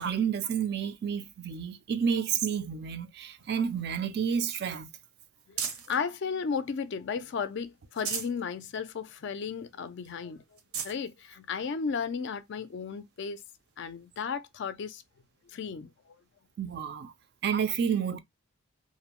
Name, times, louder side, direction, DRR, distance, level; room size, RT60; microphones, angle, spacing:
voice 1, 0.0-4.9 16.6-17.1 17.4-18.2, right 7 dB, 45° right, 0.3 m, -30 dB
sound 1, 3.4-6.0 6.6-7.3 7.7-8.4 8.9-9.0 9.3-9.4 10.0-10.1 10.5-11.0 11.8-11.9 13.7-13.8, right 6 dB, 75° right, 0.7 m, -39 dB
voice 2, 5.5-10.4 10.8-13.4 13.8-15.0 15.5-15.9, left 6 dB, 55° left, 0.3 m, -34 dB
2.5 x 2.1 x 2.9 m
head